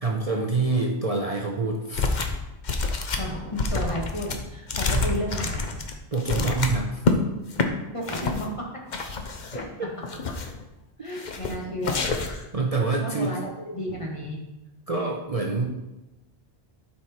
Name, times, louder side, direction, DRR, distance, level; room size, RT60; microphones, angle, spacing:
voice 1, 0.0-2.1 4.9-5.1 6.1-7.0 9.5-9.9 12.5-13.4 14.9-15.7, right 3 dB, 35° right, -1 dB, 1.0 m, -26 dB
sound 1, 1.9-2.4 2.6-7.2 7.5-7.7 8.1-8.4 8.9-9.6 10.0-10.6 11.1-11.5 11.8-12.5, left 3 dB, 45° left, 0.9 m, -27 dB
voice 2, 3.1-5.6 7.9-8.7 9.5-9.7 11.0-12.0 13.0-13.4 13.7-14.4, equal, 30° left, -2 dB, 1.8 m, -32 dB
11.5 x 5.0 x 4.4 m, 0.99 s
omnidirectional pair, 1.1 m